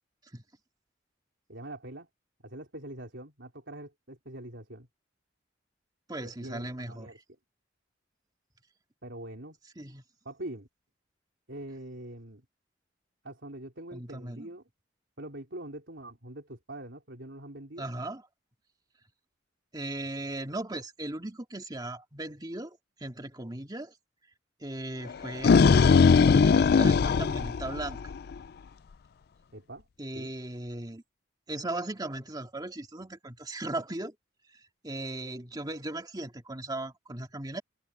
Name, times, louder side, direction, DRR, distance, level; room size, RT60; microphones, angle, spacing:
voice 1, 1.5-2.1 2.4-4.9 6.2-7.2 9.0-9.6 10.2-10.7 11.5-12.4 13.2-14.7 15.2-17.9 29.5-29.9 30.1-30.3, right 1 dB, 65° right, 4.4 m, -43 dB
voice 2, 6.1-7.1 9.8-10.0 13.9-14.5 17.8-18.2 19.7-23.9 24.6-28.0 30.0-31.0 31.5-34.1 34.8-37.6, right 2 dB, 20° right, 2.1 m, -37 dB
sound 1, 25.1-28.3, left 5 dB, 55° left, 0.4 m, -20 dB
head